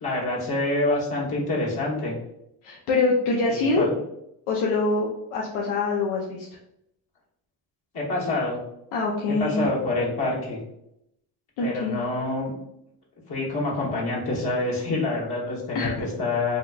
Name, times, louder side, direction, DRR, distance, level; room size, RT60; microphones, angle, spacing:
voice 1, 0.0-2.2 3.5-4.0 7.9-8.6 9.3-10.6 11.6-12.5 13.3-16.6, left 2 dB, 50° left, -4 dB, 1.1 m, -27 dB
voice 2, 2.6-3.9 4.5-6.5 8.9-9.6 11.6-11.9 15.7-15.9, left 3 dB, 75° left, -2 dB, 0.6 m, -24 dB
2.8 x 2.3 x 2.2 m, 0.80 s
hypercardioid pair, 55°, 50 cm